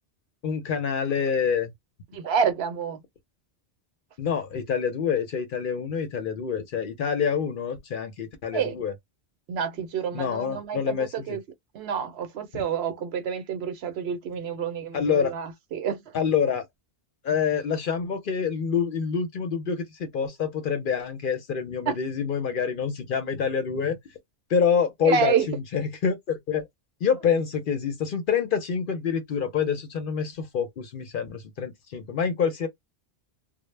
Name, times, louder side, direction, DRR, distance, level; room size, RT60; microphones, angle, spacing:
voice 1, 0.4-1.7 4.2-8.9 10.1-11.4 12.5-12.6 14.9-15.3 16.1-16.7 17.2-24.0 24.5-26.6 27.0-32.7, left 6 dB, 60° left, 0.7 m, -26 dB
voice 2, 2.1-3.0 8.5-8.8 9.5-11.4 11.7-16.1 21.9-22.0 25.0-25.5, right 7 dB, 75° right, 0.9 m, -28 dB
2.0 x 2.0 x 3.1 m
omnidirectional pair, 1.1 m